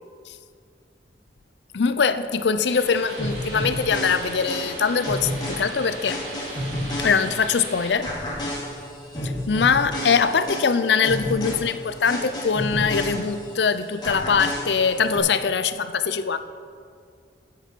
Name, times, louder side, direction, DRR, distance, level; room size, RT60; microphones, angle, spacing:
voice 1, 1.7-6.2 7.0-8.1 9.2-16.4, left 5 dB, 70° left, 12 dB, 0.5 m, -22 dB
sound 1, 2.7-7.9, right 2 dB, 70° right, 3.1 m, -38 dB
sound 2, 3.2-7.6 8.0-13.6 14.0-15.2, left 1 dB, 25° left, 2.5 m, -31 dB
14.0 x 8.4 x 4.5 m, 2.2 s
head